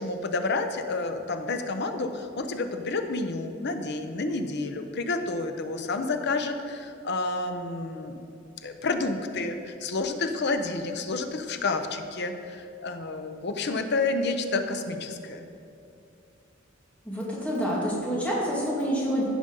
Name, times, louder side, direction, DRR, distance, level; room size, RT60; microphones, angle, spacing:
voice 1, 0.0-8.2 8.6-15.5, left 3 dB, 60° left, 6 dB, 0.8 m, -30 dB
voice 2, 17.1-19.2, equal, 5° left, -6 dB, 2.3 m, -27 dB
15.5 x 5.2 x 5.3 m, 2.7 s
head